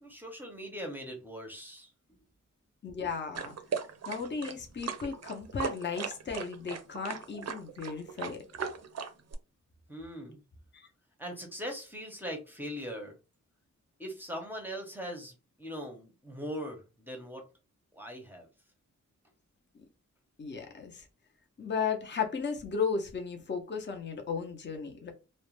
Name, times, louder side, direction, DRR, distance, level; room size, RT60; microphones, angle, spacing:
voice 1, 0.0-1.9 9.9-10.4 11.2-13.2 14.0-17.4 17.9-18.5, equal, 5° right, 2 dB, 0.7 m, -40 dB
voice 2, 2.8-3.6 4.1-8.4 10.7-10.9 19.7-19.8 20.4-21.1 21.6-25.1, left 5 dB, 35° left, 4 dB, 0.6 m, -35 dB
sound 1, 3.3-9.3, right 6 dB, 55° right, 0.5 m, -38 dB
2.4 x 2.1 x 3.0 m, 0.29 s
wide cardioid pair, 145°, 30 cm